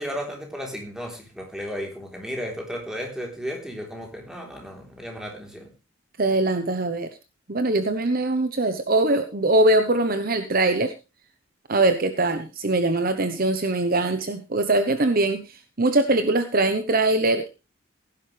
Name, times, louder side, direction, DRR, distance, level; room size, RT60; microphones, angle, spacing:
voice 1, 0.0-5.7, equal, 5° right, 1 dB, 3.6 m, -34 dB
voice 2, 6.2-7.1 7.5-10.9 11.7-17.5, right 2 dB, 45° right, 9 dB, 1.0 m, -22 dB
16.5 x 10.5 x 3.3 m, 0.29 s
head